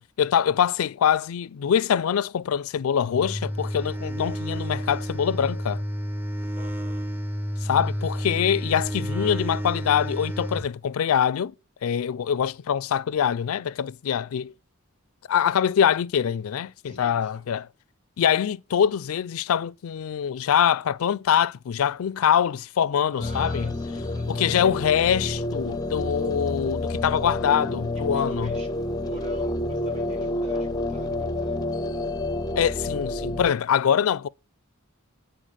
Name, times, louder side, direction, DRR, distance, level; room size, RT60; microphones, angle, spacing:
voice 1, 0.0-5.8 7.6-11.5 11.8-14.5 15.3-17.7 18.2-23.7 24.3-28.5 32.6-34.3, left 8 dB, 90° left, 0.4 m, -24 dB
sound 1, 3.1-10.7, equal, 10° right, 0.7 m, -30 dB
voice 2, 6.5-7.1 16.8-17.5 23.1-24.8 28.1-32.0, right 1 dB, 35° right, 3.8 m, -46 dB
sound 2, 23.2-33.5, left 2 dB, 20° left, 0.5 m, -29 dB
9.1 x 4.5 x 6.4 m
head